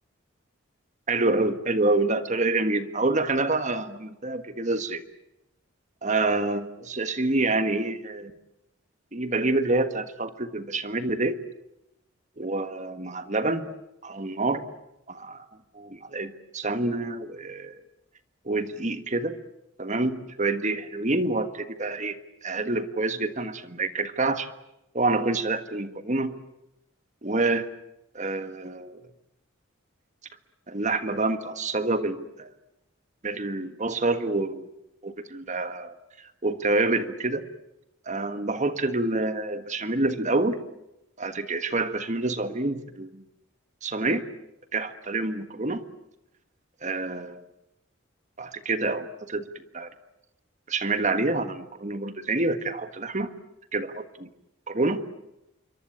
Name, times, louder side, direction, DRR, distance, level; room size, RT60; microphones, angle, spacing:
voice 1, 1.1-5.0 6.0-8.3 9.1-11.4 12.4-13.7 14.0-14.7 15.1-15.4 15.7-17.8 18.4-19.4 19.8-24.5 24.9-26.3 27.2-27.7 28.1-29.0 30.7-32.5 33.2-34.7 35.0-36.0 36.4-37.4 38.1-40.6 41.2-43.2 43.8-44.2 44.7-45.8 46.8-47.4 48.4-49.9 50.7-53.3 53.7-54.3 54.7-55.0, right 2 dB, 35° right, 10 dB, 1.5 m, -27 dB
27.0 x 24.0 x 8.7 m, 0.86 s
head